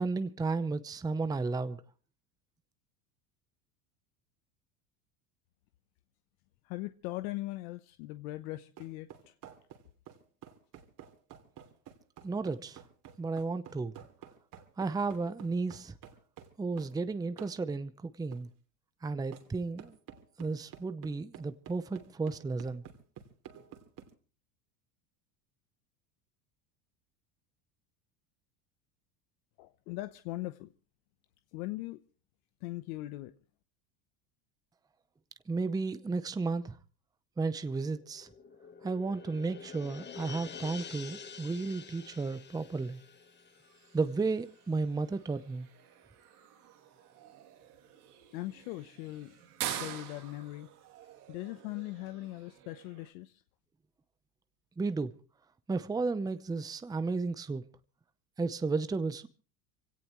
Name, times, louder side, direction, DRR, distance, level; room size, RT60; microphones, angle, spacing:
voice 1, 0.0-1.8 12.2-12.8 13.2-13.9 14.8-16.0 16.6-18.5 19.0-20.0 20.4-22.8 35.5-36.8 37.4-38.3 38.8-43.0 43.9-45.7 54.8-55.1 55.7-57.6 58.4-59.3, right 3 dB, 10° right, 0.7 m, -33 dB
voice 2, 6.6-9.3 29.6-30.7 31.5-32.0 32.6-33.3 48.3-49.4 49.7-50.7 51.3-53.3, left 18 dB, 70° left, 1.0 m, -40 dB
sound 1, 8.8-17.0 17.4-17.6 18.3-18.5 19.3-19.5 19.8-24.1, right 9 dB, 45° right, 3.0 m, -51 dB
sound 2, 37.7-44.7 45.0-45.1, left 6 dB, 25° left, 1.3 m, -48 dB
sound 3, 41.2-53.1, right 11 dB, 90° right, 2.9 m, -47 dB
24.5 x 17.5 x 3.1 m
supercardioid pair, 120°, 44 cm